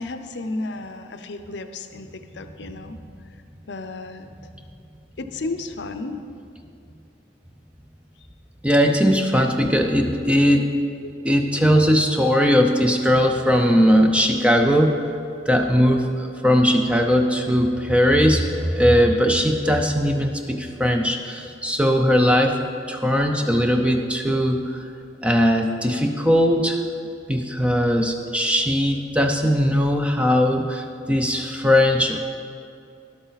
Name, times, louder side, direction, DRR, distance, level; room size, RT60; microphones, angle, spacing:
voice 1, 0.0-3.0 3.7-4.3 5.2-6.2 9.4-9.7 10.0-10.1 10.4-10.5 11.0-11.1, left 2 dB, 70° left, 8 dB, 0.5 m, -33 dB
voice 2, 8.6-10.7 11.2-15.1 15.5-22.6 22.9-24.8 25.2-26.8 27.3-32.2, equal, 5° right, 4 dB, 0.5 m, -19 dB
11.0 x 8.2 x 4.0 m, 2.5 s
head